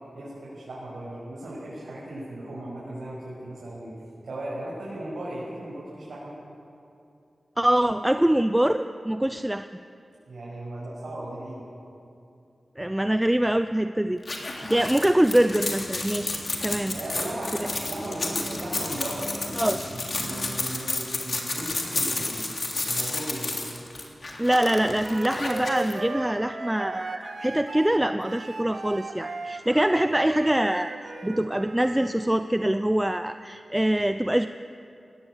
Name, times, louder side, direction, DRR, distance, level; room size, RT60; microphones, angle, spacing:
voice 1, 0.1-3.9 4.2-6.3 10.3-11.6 16.9-22.5 22.8-23.6, right 1 dB, 80° right, -8 dB, 6.6 m, -36 dB
voice 2, 7.6-9.7 12.8-14.2 14.5-17.0 17.6-17.7 19.6-19.8 24.4-30.9 31.2-34.5, right 1 dB, 10° right, 9 dB, 0.5 m, -24 dB
sound 1, 14.2-25.9, left 2 dB, 45° left, 3.1 m, -31 dB
sound 2, 14.6-20.5, equal, 20° left, 5.0 m, -42 dB
Wind instrument woodwind instrument, 24.6-32.1, right 3 dB, 60° right, 1.8 m, -36 dB
23.0 x 19.0 x 8.3 m, 2.6 s
wide cardioid pair, 130°, 0 cm